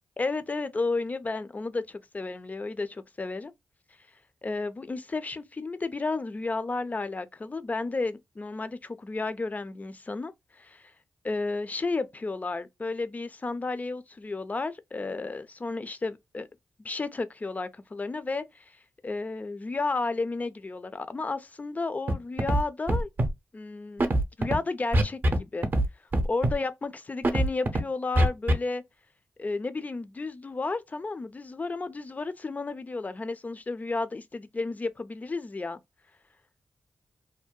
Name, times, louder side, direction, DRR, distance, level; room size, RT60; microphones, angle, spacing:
voice 1, 0.2-3.5 4.4-10.9 11.2-16.5 16.8-18.6 19.0-23.1 23.5-24.1 24.4-25.7 26.2-28.8 29.4-35.8, left 3 dB, 30° left, 0.4 m, -32 dB
Scratching (performance technique), 22.1-22.2 22.4-22.6 22.9-23.3 24.0-24.6 24.9-25.4 25.6-25.9 26.1-26.5 27.2-27.8 28.2-28.5, right 1 dB, 45° right, 0.6 m, -22 dB
2.7 x 2.1 x 2.2 m
cardioid pair, 55°, 5 cm